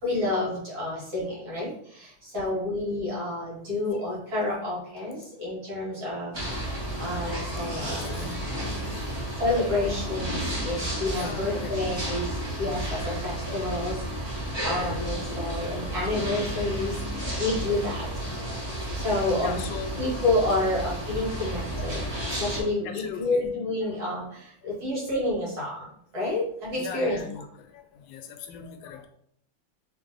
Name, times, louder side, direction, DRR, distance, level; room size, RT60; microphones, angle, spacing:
voice 1, 0.0-6.6 7.0-8.4 9.4-12.3 12.6-18.1 18.9-19.6 20.0-22.0 22.4-25.9 26.1-27.2, left 2 dB, 50° right, -6 dB, 2.4 m, -29 dB
voice 2, 3.6-4.0 7.9-8.3 11.1-12.0 14.6-14.7 15.5-16.0 18.7-18.9 19.4-20.1 21.4-23.5 23.8-24.3 26.8-29.1, left 6 dB, 80° left, 6 dB, 1.3 m, -41 dB
sound 1, 6.3-22.6, right 1 dB, 20° right, 0.9 m, -32 dB
sound 2, 6.8-9.5, right 3 dB, 20° left, 1.1 m, -47 dB
3.8 x 3.3 x 3.9 m, 0.68 s
omnidirectional pair, 2.1 m